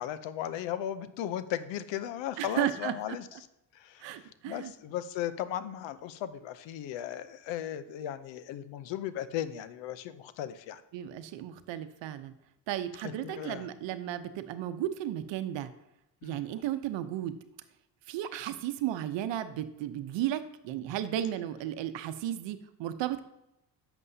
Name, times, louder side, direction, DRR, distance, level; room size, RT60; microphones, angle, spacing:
voice 1, 0.0-3.3 3.7-10.8 13.0-13.7 16.2-16.5, left 11 dB, 85° left, 13 dB, 0.7 m, -36 dB
voice 2, 2.4-3.2 4.0-4.7 10.9-12.3 12.7-15.7 16.2-17.3 18.1-23.2, right 12 dB, 80° right, 11 dB, 0.8 m, -34 dB
11.0 x 7.1 x 2.7 m, 0.86 s
supercardioid pair, 70°, 43 cm